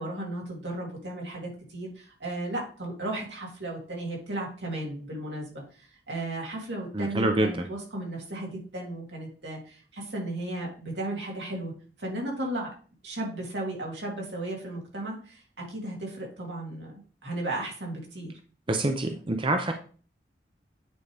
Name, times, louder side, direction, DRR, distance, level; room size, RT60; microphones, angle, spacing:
voice 1, 0.0-11.7 12.0-12.7 13.0-18.3, right 1 dB, 85° right, -1 dB, 2.8 m, -35 dB
voice 2, 6.9-7.6 18.7-19.7, right 1 dB, 30° right, 5 dB, 0.6 m, -26 dB
9.2 x 4.9 x 3.5 m, 0.40 s
head